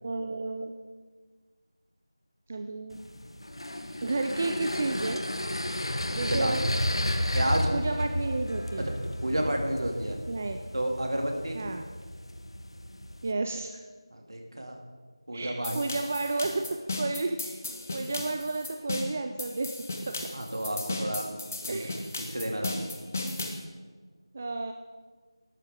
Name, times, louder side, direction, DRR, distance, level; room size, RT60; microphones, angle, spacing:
voice 1, 0.0-0.7 2.5-3.0 4.0-5.2 6.2-6.7 7.7-8.9 10.3-10.6 11.5-11.8 13.2-13.8 15.3-17.6 17.9-20.3 21.7-22.1 22.8-22.9 24.3-24.7, right 3 dB, 20° right, 6 dB, 0.3 m, -32 dB
sound 1, 2.9-13.3, left 1 dB, 75° left, 1.1 m, -33 dB
voice 2, 6.3-6.7 7.3-7.7 8.8-8.9 9.2-10.2 10.7-11.6 14.1-14.8 15.3-15.7 20.3-21.3 21.7-21.9 22.2-22.7, right 1 dB, 60° right, 2 dB, 2.5 m, -30 dB
sound 2, 15.6-23.6, left 2 dB, 30° left, 1.1 m, -36 dB
14.5 x 12.0 x 3.7 m, 1.5 s
figure-of-eight pair, 170°, 3 cm